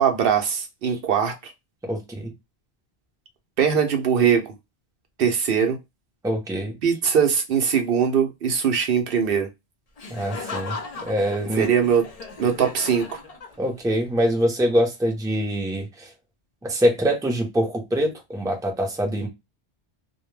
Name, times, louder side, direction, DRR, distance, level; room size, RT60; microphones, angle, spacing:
voice 1, 0.0-1.5 3.6-4.5 5.2-5.8 6.8-9.5 11.6-12.1 12.4-13.2, right 7 dB, 65° right, 0.7 m, -21 dB
voice 2, 1.8-2.3 6.2-6.8 10.1-10.8 11.0-11.7 13.6-16.1 16.6-19.3, equal, 5° right, 0.5 m, -24 dB
Laughter, 10.0-13.9, left 4 dB, 45° left, 0.6 m, -37 dB
2.2 x 2.1 x 3.1 m
omnidirectional pair, 1.1 m